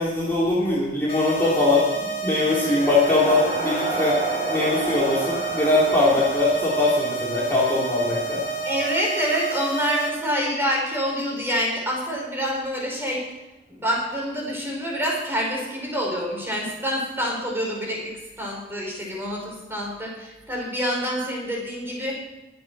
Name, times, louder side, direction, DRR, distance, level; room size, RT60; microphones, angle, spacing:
voice 1, 0.0-4.2 4.5-8.4, left 2 dB, 10° left, -7 dB, 3.1 m, -21 dB
sound 1, 1.1-10.1, right 4 dB, 30° left, 2.3 m, -30 dB
sound 2, 2.1-9.8, right 2 dB, 30° right, 5.2 m, -33 dB
voice 2, 8.6-13.2 13.7-22.1, equal, 10° right, -2 dB, 4.8 m, -27 dB
21.5 x 7.8 x 6.1 m, 1.0 s
head